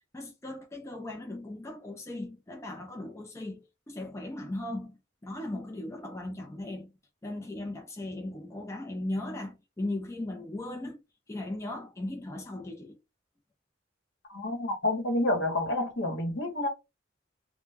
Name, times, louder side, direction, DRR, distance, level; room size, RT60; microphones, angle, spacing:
voice 1, 0.1-6.9 7.2-11.0 11.3-13.0, left 1 dB, 15° left, 0.4 m, -37 dB
voice 2, 14.3-16.7, left 1 dB, 70° left, 0.9 m, -29 dB
2.1 x 2.0 x 3.3 m
head